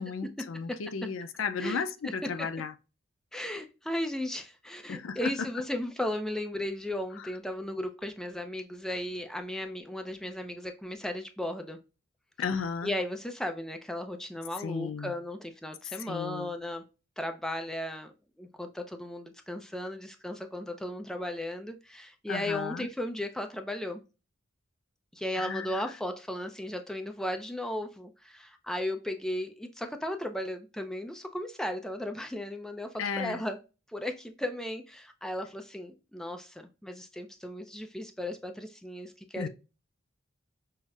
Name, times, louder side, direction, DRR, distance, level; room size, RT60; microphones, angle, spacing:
voice 1, 0.0-2.7 4.9-5.3 7.2-7.3 12.4-12.9 14.6-15.1 15.8-16.5 22.3-22.9 25.3-25.9 33.0-33.4 39.4-39.5, left 5 dB, 75° left, 0.4 m, -34 dB
voice 2, 1.6-2.1 2.4-2.5 3.3-11.8 12.8-16.8 17.2-18.1 18.4-24.0 25.1-33.6 33.9-39.5, left 1 dB, 5° left, 0.3 m, -36 dB
5.6 x 2.0 x 2.3 m
head